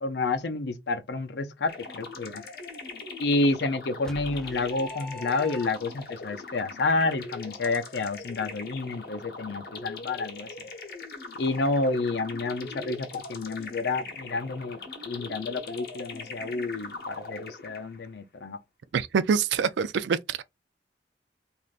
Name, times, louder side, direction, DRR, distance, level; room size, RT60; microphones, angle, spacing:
voice 1, 0.0-2.4 3.2-10.5 11.4-14.8 15.0-18.6, left 3 dB, 75° left, 0.6 m, -29 dB
sound 1, 1.7-18.1, left 3 dB, 55° left, 0.9 m, -41 dB
sound 2, 4.0-6.1, left 1 dB, 5° left, 0.3 m, -42 dB
voice 2, 18.9-20.4, right 6 dB, 80° right, 0.4 m, -25 dB
3.3 x 2.6 x 2.3 m
head